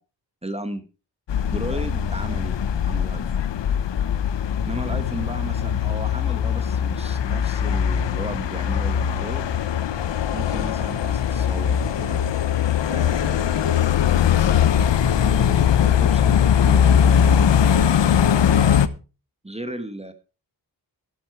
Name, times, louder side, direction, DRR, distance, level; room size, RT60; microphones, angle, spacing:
voice 1, 0.4-0.8 1.5-3.3 4.7-9.5 10.3-12.2 12.9-13.7 15.1-17.2 19.4-20.1, right 1 dB, 15° right, 9 dB, 1.4 m, -35 dB
sound 1, 1.3-18.9, left 8 dB, 90° left, 0.9 m, -20 dB
11.5 x 11.0 x 4.6 m, 0.33 s
wide cardioid pair, 80°, 42 cm